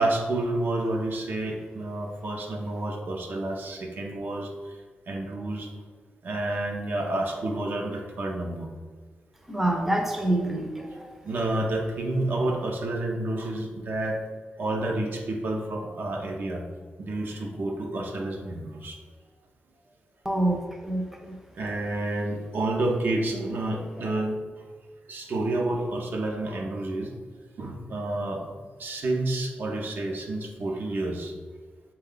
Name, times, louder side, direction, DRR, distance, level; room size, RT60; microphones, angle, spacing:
voice 1, 0.0-4.5 5.1-5.7 6.2-8.7 11.2-14.2 14.6-16.6 17.0-19.0 21.5-24.4 25.1-27.1 27.6-28.5 28.8-31.3, right 2 dB, 60° right, 0 dB, 0.6 m, -29 dB
voice 2, 9.5-11.1 20.3-21.3, right 1 dB, 5° right, 1 dB, 0.5 m, -27 dB
4.2 x 2.3 x 3.7 m, 1.5 s
cardioid pair, 85°, 4 cm